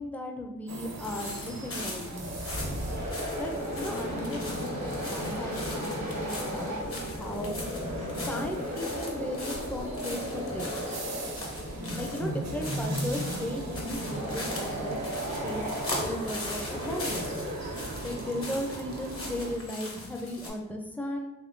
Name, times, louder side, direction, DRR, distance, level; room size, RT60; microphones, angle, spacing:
voice 1, 0.0-2.4 3.4-7.6 8.3-10.7 12.0-15.0 15.4-15.6 16.0-17.3 18.0-21.3, left 1 dB, 5° left, 2 dB, 0.4 m, -36 dB
sound 1, 0.7-19.6, right 3 dB, 60° right, 0.6 m, -42 dB
sound 2, 1.0-20.5, left 2 dB, 45° left, 0.8 m, -41 dB
sound 3, 2.2-18.2, equal, 85° right, 1.1 m, -35 dB
3.6 x 3.0 x 2.5 m, 1.0 s
wide cardioid pair, 60°, 32 cm